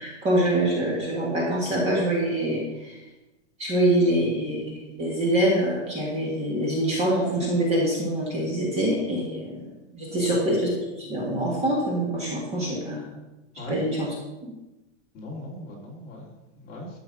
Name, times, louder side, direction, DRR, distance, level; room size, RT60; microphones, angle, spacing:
voice 1, 0.0-2.9 3.6-9.6 9.9-13.0 13.7-14.1 14.4-14.5, right 1 dB, 15° right, -3 dB, 1.6 m, -25 dB
voice 2, 10.1-10.4 13.6-13.8 15.1-17.0, left 1 dB, 25° left, -3 dB, 2.5 m, -39 dB
12.5 x 5.6 x 6.2 m, 1.0 s
supercardioid pair, 180°, 37 cm